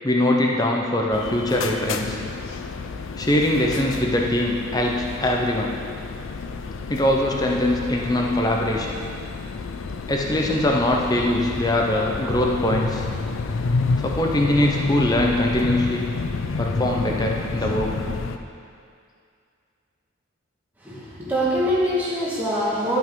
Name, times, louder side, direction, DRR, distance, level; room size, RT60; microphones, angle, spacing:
voice 1, 0.0-2.2 3.2-5.8 6.9-9.0 10.1-13.0 14.0-16.1 16.6-17.9, left 1 dB, 20° left, 0 dB, 0.7 m, -22 dB
sound 1, 1.1-18.4, left 4 dB, 70° left, 0.5 m, -30 dB
voice 2, 20.8-23.0, equal, 10° right, -8 dB, 1.7 m, -24 dB
12.0 x 5.4 x 3.8 m, 2.3 s
head